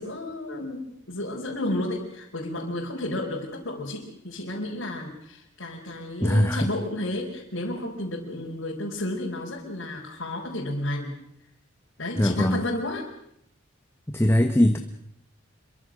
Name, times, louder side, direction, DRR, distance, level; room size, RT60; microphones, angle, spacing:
voice 1, 0.0-11.1 12.0-13.1, left 1 dB, 65° left, -4 dB, 4.6 m, -32 dB
voice 2, 6.2-6.7 12.2-12.6 14.1-14.8, left 1 dB, 10° left, 6 dB, 1.2 m, -21 dB
27.0 x 23.5 x 6.4 m, 0.73 s
head